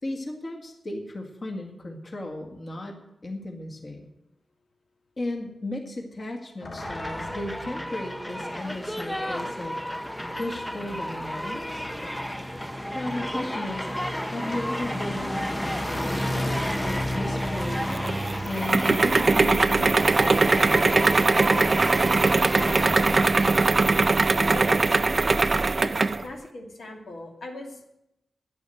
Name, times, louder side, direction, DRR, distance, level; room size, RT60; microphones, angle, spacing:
voice 1, 0.0-4.1 5.2-9.8 10.4-11.9 12.9-13.9 14.3-18.2 18.4-21.0, left 1 dB, 35° left, 3 dB, 1.8 m, -35 dB
sound 1, 6.6-7.9 9.4-9.5 10.1-11.4 11.7-13.2 14.5-17.5 19.6-20.5 20.7-21.2 21.6-22.7, left 1 dB, 65° left, 3.2 m, -43 dB
sound 2, 6.8-23.7, equal, 5° left, 0.6 m, -32 dB
sound 3, 17.4-26.2, right 3 dB, 35° right, 0.4 m, -21 dB
voice 2, 24.3-24.7 25.8-27.9, left 2 dB, 80° left, 1 dB, 2.4 m, -39 dB
11.5 x 10.0 x 7.8 m, 0.84 s
wide cardioid pair, 125°, 0 cm